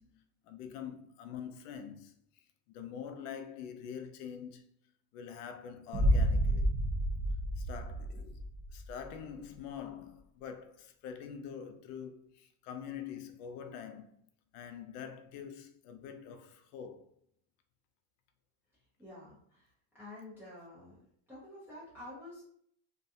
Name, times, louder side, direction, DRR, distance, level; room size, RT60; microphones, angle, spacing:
voice 1, 0.0-2.1 2.7-4.6 5.1-6.7 7.6-8.4 8.7-17.1, left 8 dB, 90° left, 0.6 m, -45 dB
Boom, 5.9-8.9, equal, 55° right, 0.7 m, -30 dB
voice 2, 19.0-19.7 19.9-21.0 21.3-22.4, left 1 dB, 5° right, 0.3 m, -49 dB
2.5 x 2.2 x 2.6 m
cardioid pair, 170°, 44 cm